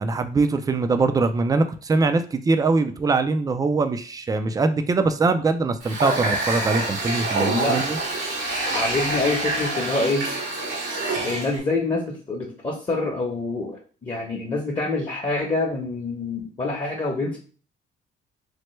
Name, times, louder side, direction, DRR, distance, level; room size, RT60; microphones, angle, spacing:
voice 1, 0.0-8.0, right 3 dB, 20° right, 9 dB, 0.3 m, -22 dB
Water tap faucet, 5.8-11.6, right 2 dB, 75° right, 1.0 m, -26 dB
voice 2, 7.4-7.8 8.7-10.3 11.2-17.4, left 2 dB, 25° left, -1 dB, 0.8 m, -26 dB
3.2 x 2.1 x 3.1 m, 0.40 s
cardioid pair, 90°, 20 cm